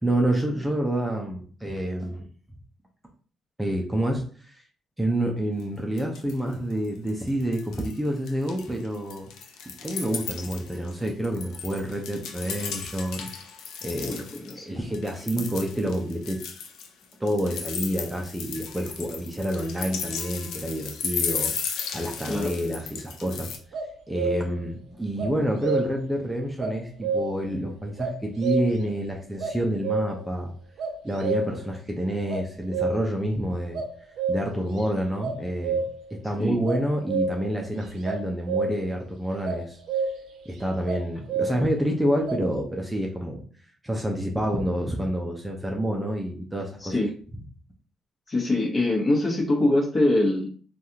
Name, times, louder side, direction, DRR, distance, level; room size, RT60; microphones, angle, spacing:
voice 1, 0.0-2.2 3.6-4.6 5.0-9.3 9.8-13.3 13.8-14.3 14.6-16.4 17.2-23.5 24.1-30.5 31.0-33.8 34.3-35.8 36.1-39.8 40.5-43.4 43.8-46.9, right 1 dB, 10° right, 1 dB, 0.6 m, -28 dB
sound 1, 5.6-5.7 6.0-6.5 6.8-8.0 8.3-14.5 14.9-23.6, left 6 dB, 85° left, 0.5 m, -35 dB
voice 2, 14.0-14.7 22.3-22.5 36.4-36.6 46.8-47.1 48.3-50.5, left 2 dB, 35° left, -1 dB, 1.1 m, -24 dB
sound 2, 23.7-24.7 25.2-26.1 26.6-27.5 28.0-28.9 29.4-30.3 30.8-31.7 32.3-33.2 33.7-34.8 35.2-36.1 36.7-37.6 38.0-39.0 39.4-40.4 40.9-41.8 42.3-42.5, right 4 dB, 75° right, 0.6 m, -29 dB
3.3 x 2.4 x 2.7 m, 0.43 s
cardioid pair, 90°, 0 cm